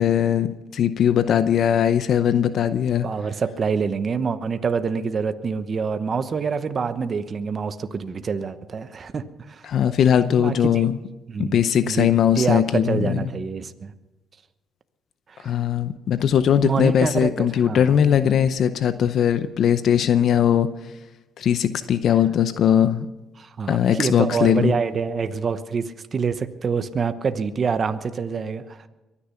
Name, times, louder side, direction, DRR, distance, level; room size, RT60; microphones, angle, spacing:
voice 1, 0.0-3.1 9.6-11.0 11.4-13.2 15.4-20.7 21.4-23.1 23.7-24.7, left 9 dB, 65° left, 12 dB, 0.7 m, -20 dB
voice 2, 3.0-9.6 10.4-10.8 11.3-12.1 12.3-13.9 15.3-15.5 16.6-17.3 17.7-17.9 23.4-28.8, right 5 dB, 45° right, 11 dB, 1.0 m, -26 dB
23.0 x 10.0 x 5.8 m, 1.1 s
cardioid pair, 90°, 0 cm